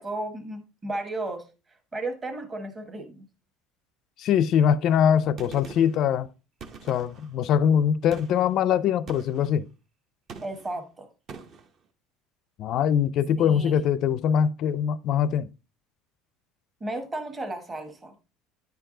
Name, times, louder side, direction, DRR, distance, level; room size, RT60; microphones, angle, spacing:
voice 1, 0.0-1.4 1.9-3.3 10.4-11.1 13.4-13.8 16.8-18.1, right 2 dB, 20° right, 1.2 m, -34 dB
voice 2, 4.2-6.3 6.9-9.7 12.6-15.5, left 8 dB, 45° left, 0.4 m, -22 dB
Gunshot gunfire, 5.4-6.0 6.6-7.3 8.1-8.5 9.1-9.5 10.3-10.8 11.3-11.7, right 5 dB, 35° right, 0.8 m, -43 dB
9.4 x 4.6 x 3.7 m
cardioid pair, 155°, 0 cm